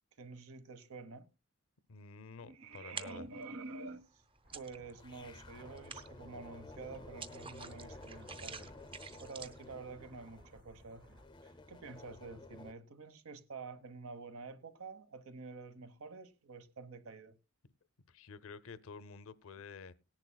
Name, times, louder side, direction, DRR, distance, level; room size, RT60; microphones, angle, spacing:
voice 1, 0.2-1.3 2.4-4.2 4.5-8.7 9.2-17.3, right 4 dB, 80° right, 1.1 m, -49 dB
voice 2, 1.9-3.2 18.1-19.9, left 4 dB, 70° left, 0.6 m, -50 dB
sound 1, 2.7-3.5 3.9-5.1 5.4-9.7, right 5 dB, 25° right, 0.7 m, -48 dB
sound 2, 4.4-11.3, equal, 45° right, 1.7 m, -61 dB
sound 3, 5.0-12.7, left 2 dB, 20° left, 0.5 m, -53 dB
18.5 x 10.5 x 2.2 m
head